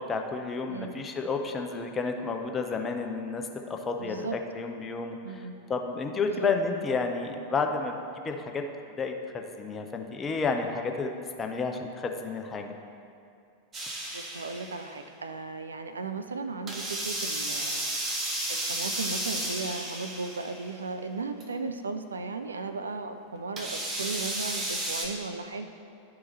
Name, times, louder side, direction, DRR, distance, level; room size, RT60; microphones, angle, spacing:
voice 1, 0.0-7.9 8.2-8.7 9.0-11.1 11.4-12.7, left 4 dB, 20° left, 4 dB, 0.6 m, -31 dB
voice 2, 0.6-1.0 4.0-4.4 5.2-5.5 6.2-6.5 14.1-17.9 18.5-25.7, right 4 dB, 75° right, 8 dB, 0.4 m, -36 dB
sound 1, 13.7-14.9 16.7-20.7 21.4-21.5 23.6-25.1, right 1 dB, 25° right, 1.2 m, -33 dB
11.5 x 4.7 x 3.1 m, 2.5 s
figure-of-eight pair, 90°, 0 cm